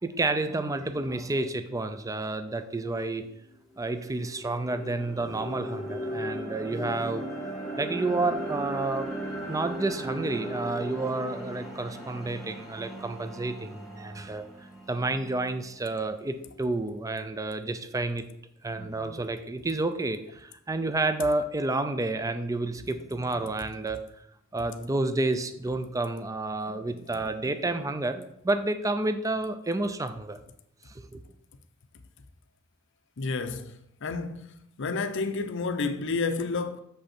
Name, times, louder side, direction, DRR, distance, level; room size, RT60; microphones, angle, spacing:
voice 1, 0.0-3.3 3.8-9.1 9.5-14.5 14.9-18.3 18.6-24.0 24.5-30.4 30.9-31.2, right 2 dB, 15° right, 0.5 m, -30 dB
sound 1, 3.2-3.3 3.8-15.8, right 1 dB, ahead, 1.3 m, -37 dB
voice 2, 33.2-33.7 34.0-34.5 34.8-36.8, left 4 dB, 65° left, 0.6 m, -30 dB
7.0 x 5.3 x 4.3 m
head